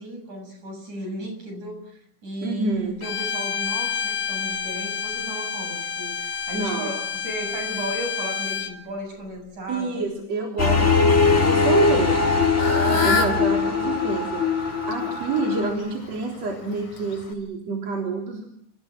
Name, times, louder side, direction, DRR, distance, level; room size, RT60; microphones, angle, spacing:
voice 1, 0.0-10.1 12.8-13.3, right 1 dB, 75° right, 4 dB, 9.1 m, -35 dB
voice 2, 2.4-3.0 6.5-6.9 9.7-12.3 12.9-18.5, right 3 dB, 55° right, 0 dB, 4.9 m, -28 dB
Bowed string instrument, 3.0-8.8, left 7 dB, 50° left, 2.5 m, -29 dB
sound 1, 10.6-15.7, left 4 dB, 20° left, 4.6 m, -21 dB
Fowl / Bird, 12.0-17.3, left 3 dB, 85° left, 5.6 m, -30 dB
29.5 x 27.5 x 6.2 m, 0.72 s
omnidirectional pair, 3.4 m